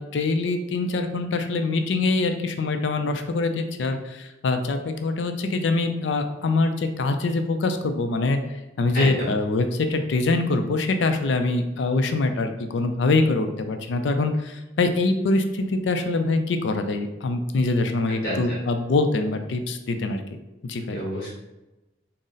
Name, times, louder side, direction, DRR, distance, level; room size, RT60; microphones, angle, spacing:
voice 1, 0.0-8.4 8.8-20.2 20.6-21.0, left 3 dB, 75° left, 7 dB, 0.4 m, -24 dB
voice 2, 8.9-9.3 18.2-18.6 20.9-21.3, equal, 55° left, -6 dB, 1.1 m, -29 dB
3.8 x 2.0 x 3.9 m, 1.0 s
head